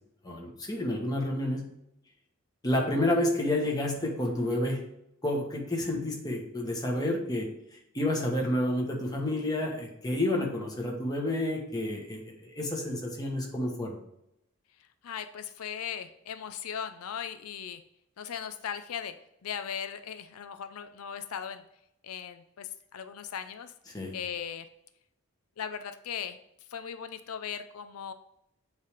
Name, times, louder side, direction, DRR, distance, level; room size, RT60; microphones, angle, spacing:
voice 1, 0.2-1.6 2.6-4.8 5.2-7.5 7.9-14.0 23.9-24.1, left 1 dB, 15° left, -1 dB, 1.3 m, -29 dB
voice 2, 15.0-17.8 18.2-19.1 19.4-21.6 22.0-23.7 24.1-24.7 25.6-26.4 26.7-28.1, left 8 dB, 85° left, 9 dB, 0.5 m, -38 dB
8.1 x 3.4 x 5.0 m, 0.80 s
head